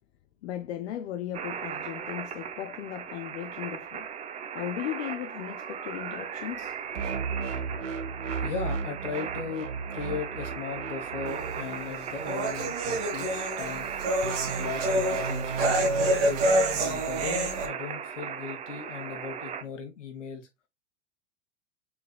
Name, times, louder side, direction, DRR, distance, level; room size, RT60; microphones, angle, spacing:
voice 1, 0.4-4.1 4.5-7.1, left 12 dB, 65° left, 0.6 m, -37 dB
sound 1, 1.3-19.6, right 7 dB, 20° right, 0.5 m, -37 dB
sound 2, 6.9-13.5 14.2-16.5, right 5 dB, 90° right, 0.9 m, -35 dB
voice 2, 8.4-13.9 14.5-15.9 16.1-16.4 16.7-20.5, left 6 dB, 80° left, 1.6 m, -38 dB
sound 3, 11.3-17.7, right 1 dB, 60° right, 1.4 m, -28 dB
4.2 x 3.8 x 2.2 m
hypercardioid pair, 105°, 36 cm